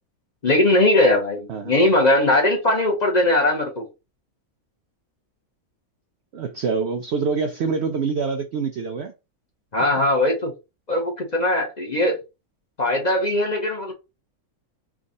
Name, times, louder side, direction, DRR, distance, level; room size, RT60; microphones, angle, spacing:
voice 1, 0.4-3.9 9.7-10.5 10.9-12.2 12.8-13.9, left 1 dB, 35° left, 0.8 m, -20 dB
voice 2, 6.3-9.1 12.0-12.1, right 5 dB, 70° right, 0.6 m, -25 dB
3.5 x 2.4 x 3.9 m
omnidirectional pair, 1.6 m